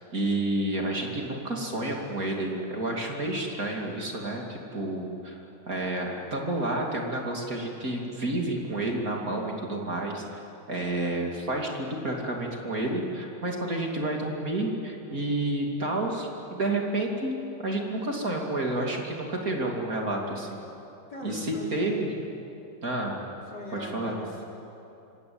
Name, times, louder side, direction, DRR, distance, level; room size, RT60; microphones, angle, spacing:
voice 1, 0.1-10.2 10.7-20.6 21.2-22.1 22.8-23.2 23.7-24.1, right 2 dB, 40° right, 0 dB, 3.1 m, -30 dB
voice 2, 21.1-21.9 23.5-24.5, left 1 dB, 50° left, -3 dB, 5.4 m, -39 dB
26.5 x 24.5 x 8.7 m, 3.0 s
omnidirectional pair, 2.3 m